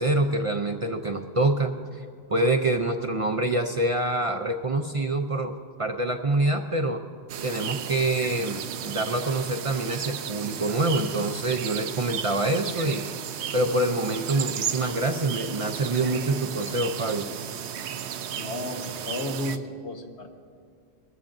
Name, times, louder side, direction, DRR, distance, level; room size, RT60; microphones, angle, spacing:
voice 1, 0.0-2.0 2.3-5.5 5.8-7.0 7.4-13.1 13.5-17.3, right 2 dB, 40° right, 5 dB, 0.5 m, -26 dB
sound 1, 7.3-19.6, right 8 dB, 80° right, 0.9 m, -34 dB
voice 2, 18.4-20.3, left 1 dB, 90° left, 3 dB, 1.5 m, -33 dB
21.0 x 14.5 x 2.6 m, 2.3 s
omnidirectional pair, 1.1 m